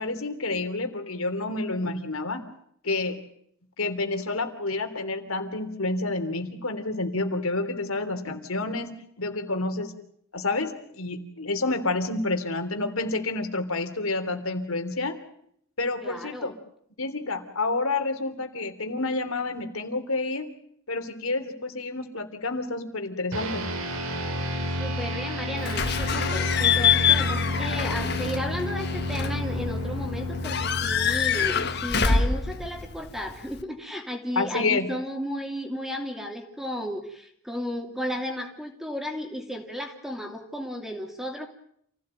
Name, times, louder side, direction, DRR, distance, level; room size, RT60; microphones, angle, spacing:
voice 1, 0.0-2.5 2.8-3.2 3.8-9.9 10.3-15.2 15.8-16.5 17.0-20.5 20.9-23.7 34.3-34.9, left 3 dB, 85° left, 7 dB, 3.2 m, -29 dB
voice 2, 16.0-16.5 24.8-41.5, equal, ahead, 4 dB, 2.8 m, -34 dB
sound 1, 23.3-33.0, left 1 dB, 85° right, 4.0 m, -31 dB
Slam / Squeak / Alarm, 25.6-33.6, left 6 dB, 50° left, 1.5 m, -26 dB
28.0 x 16.5 x 9.0 m, 0.70 s
head